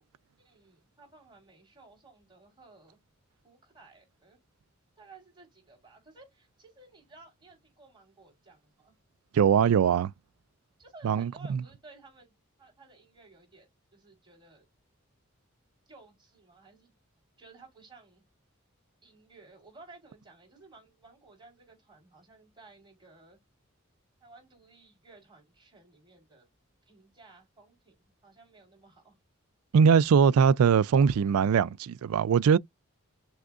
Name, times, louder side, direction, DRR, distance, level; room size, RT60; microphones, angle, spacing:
voice 1, 0.4-3.0 3.4-4.4 5.0-9.0 10.8-14.7 15.9-16.9 17.4-18.2 19.0-23.4 24.2-26.5 26.8-29.2, right 3 dB, 20° right, 3.4 m, -56 dB
voice 2, 9.3-10.1 11.0-11.6 29.7-32.6, right 6 dB, 85° right, 0.3 m, -22 dB
6.2 x 2.4 x 2.3 m
head